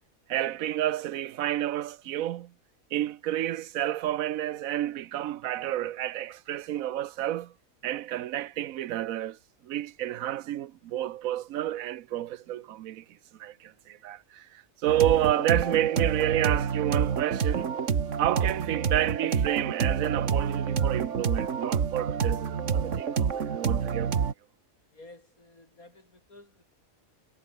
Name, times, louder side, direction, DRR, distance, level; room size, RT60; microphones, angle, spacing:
voice 1, 0.3-2.5 2.9-7.5 7.8-9.4 9.6-13.0 13.4-17.8 18.2-24.1, right 13 dB, 75° right, 1.1 m, -30 dB
sound 1, 14.9-24.3, right 6 dB, 60° right, 1.7 m, -28 dB
voice 2, 24.9-26.6, left 2 dB, 85° left, 7.0 m, -52 dB
omnidirectional pair, 1.5 m